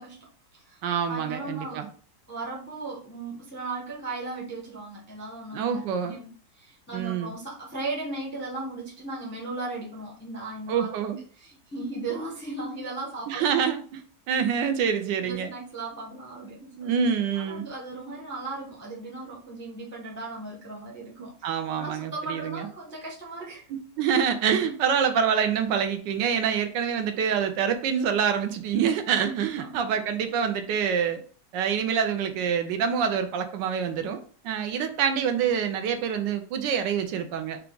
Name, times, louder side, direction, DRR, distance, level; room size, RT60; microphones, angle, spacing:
voice 1, 0.0-0.8 1.1-1.9 2.3-10.9 11.3-13.5 15.2-17.0 17.3-21.5 21.8-23.7 29.6-30.0, right 2 dB, 10° left, -3 dB, 0.5 m, -37 dB
voice 2, 0.8-1.9 5.5-6.2 6.9-7.3 10.7-11.2 13.3-14.0 14.3-15.5 16.8-17.7 21.2-22.7 23.7-31.2 31.5-37.6, right 7 dB, 80° right, 7 dB, 1.3 m, -26 dB
4.8 x 2.3 x 3.7 m, 0.43 s
omnidirectional pair, 2.0 m